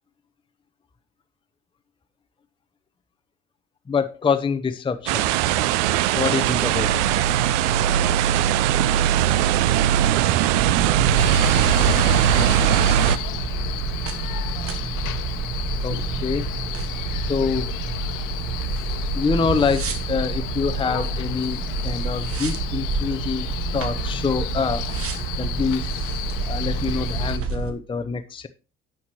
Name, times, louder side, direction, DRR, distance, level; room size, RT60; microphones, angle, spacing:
voice 1, 3.9-5.3 6.1-7.0 15.8-16.5 17.3-17.7 19.2-24.8 25.4-25.9 26.5-28.5, left 5 dB, 15° left, 0.7 m, -25 dB
sound 1, 5.1-13.2, right 11 dB, 75° right, 0.6 m, -19 dB
sound 2, 10.5-27.7, right 4 dB, 40° right, 1.2 m, -28 dB
Male speech man speaking, 11.2-27.4, left 12 dB, 60° left, 1.0 m, -33 dB
9.6 x 7.6 x 3.0 m
hypercardioid pair, 65°, 36 cm